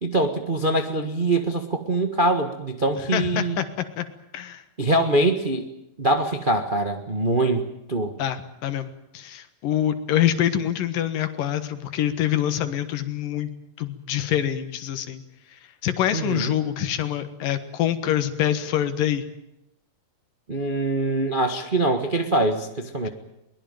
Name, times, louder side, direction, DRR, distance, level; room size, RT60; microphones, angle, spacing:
voice 1, 0.0-3.6 4.8-5.7 6.0-8.1 16.1-16.5 20.5-23.1, right 2 dB, 60° right, 6 dB, 0.5 m, -23 dB
voice 2, 3.1-4.1 4.3-4.6 8.2-8.9 9.1-13.5 13.8-15.2 15.5-19.2 23.0-23.1, left 11 dB, 80° left, 10 dB, 3.2 m, -25 dB
22.5 x 20.5 x 9.2 m, 0.84 s
omnidirectional pair, 3.8 m